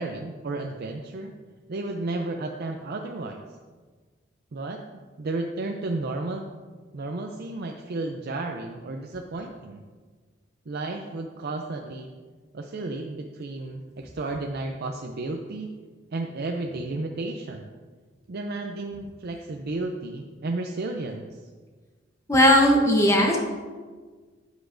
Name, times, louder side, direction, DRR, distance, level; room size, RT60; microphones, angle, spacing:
voice 1, 0.0-1.3 1.7-3.4 4.5-6.4 6.9-9.8 10.7-12.1 12.5-15.7 16.1-17.7 18.3-21.4, right 2 dB, 55° right, 3 dB, 0.5 m, -33 dB
voice 2, 22.3-23.4, equal, 15° left, 0 dB, 0.8 m, -17 dB
9.6 x 8.2 x 2.6 m, 1.4 s
head